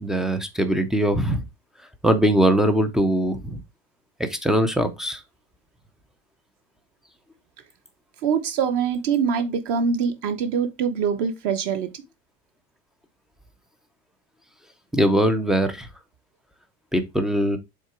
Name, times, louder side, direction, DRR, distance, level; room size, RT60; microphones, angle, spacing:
voice 1, 0.0-1.4 2.0-3.6 4.3-5.2 14.9-15.9 16.9-17.6, right 1 dB, ahead, 0.4 m, -21 dB
voice 2, 8.2-11.9, right 6 dB, 45° right, 1.0 m, -24 dB
6.5 x 3.8 x 4.5 m
cardioid pair, 175°, 34 cm